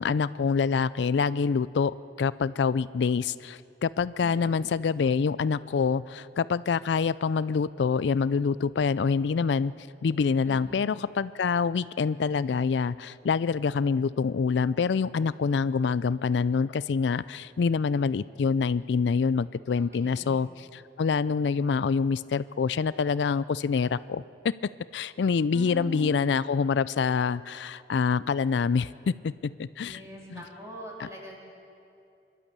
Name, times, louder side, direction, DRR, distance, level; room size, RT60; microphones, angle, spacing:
voice 1, 0.0-9.7 10.0-24.2 24.9-30.0 30.3-30.4 31.0-31.1, left 5 dB, 80° left, 17 dB, 0.4 m, -26 dB
voice 2, 4.2-4.6 10.4-10.9 19.8-20.3 25.5-26.1 29.8-31.4, equal, 15° right, -2 dB, 3.7 m, -42 dB
26.5 x 12.0 x 8.2 m, 2.6 s
head